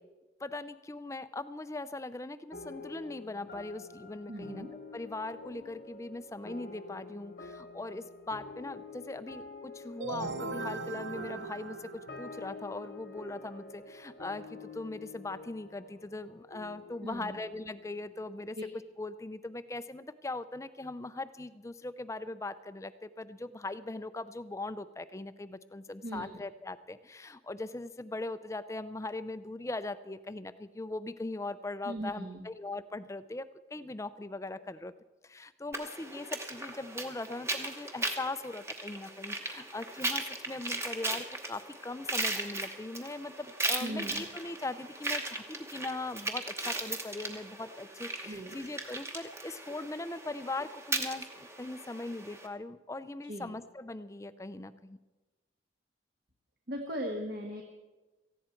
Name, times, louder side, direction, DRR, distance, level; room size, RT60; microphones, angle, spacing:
voice 1, 0.4-4.6 4.9-18.6 19.0-34.9 35.2-55.0, left 2 dB, 15° left, 13 dB, 0.4 m, -40 dB
sound 1, 2.5-19.3, left 4 dB, 55° left, 1.0 m, -47 dB
voice 2, 4.3-4.7 17.0-17.4 18.5-18.6 26.0-26.4 31.8-32.5 43.8-44.2 48.2-48.5 53.3-53.5 56.7-57.6, equal, 55° right, 1 dB, 1.4 m, -38 dB
sound 2, 10.0-12.7, right 5 dB, 80° right, 0.6 m, -40 dB
sound 3, 35.7-52.5, right 2 dB, 15° right, 1.0 m, -37 dB
18.0 x 14.5 x 4.4 m, 1.2 s
head